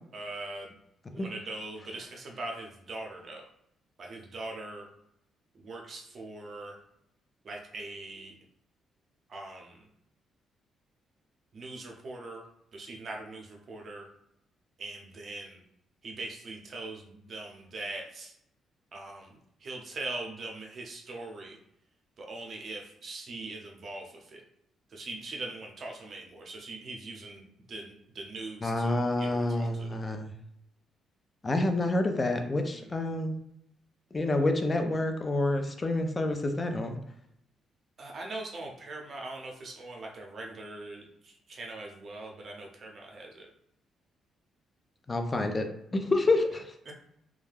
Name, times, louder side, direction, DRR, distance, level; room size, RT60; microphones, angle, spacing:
voice 1, 0.1-0.7 1.1-3.4 4.0-4.9 5.5-6.8 7.4-8.3 9.3-9.9 11.5-12.4 12.7-14.1 14.8-15.6 16.0-18.3 18.9-21.6 22.2-24.4 24.9-30.0 32.7-32.9 38.0-43.5 46.9-47.0, right 2 dB, 50° right, 0 dB, 0.7 m, -41 dB
voice 2, 28.6-30.3 31.4-33.4 34.1-37.0 45.1-45.7 45.9-46.6, left 2 dB, 25° left, 5 dB, 0.4 m, -28 dB
2.3 x 2.2 x 3.2 m, 0.76 s
cardioid pair, 90°, 0 cm